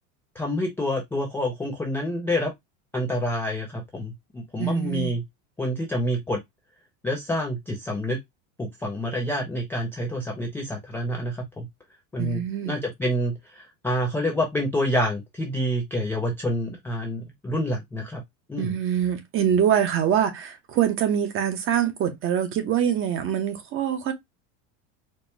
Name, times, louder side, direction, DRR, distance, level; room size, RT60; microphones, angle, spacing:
voice 1, 0.4-2.5 2.9-5.2 5.6-6.4 7.0-8.2 8.6-11.7 12.1-18.2 18.5-18.8, equal, 5° left, 0.3 m, -28 dB
voice 2, 4.6-5.1 12.2-12.8 18.6-24.1, right 9 dB, 30° right, 0.7 m, -24 dB
4.3 x 2.0 x 3.2 m
cardioid pair, 150°, 40 cm